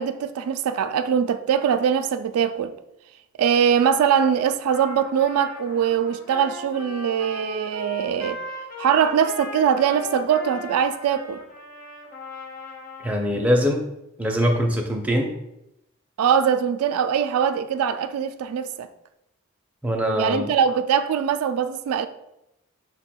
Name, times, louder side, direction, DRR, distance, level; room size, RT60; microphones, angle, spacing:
voice 1, 0.0-2.7 3.4-8.4 8.8-11.4 16.2-18.9 20.1-22.1, right 8 dB, 85° right, 0.3 m, -22 dB
Trumpet, 4.7-13.2, left 3 dB, 40° left, 0.7 m, -38 dB
voice 2, 13.0-13.8 14.2-15.3 19.8-20.5, equal, 5° right, 0.4 m, -22 dB
5.3 x 2.2 x 4.2 m
head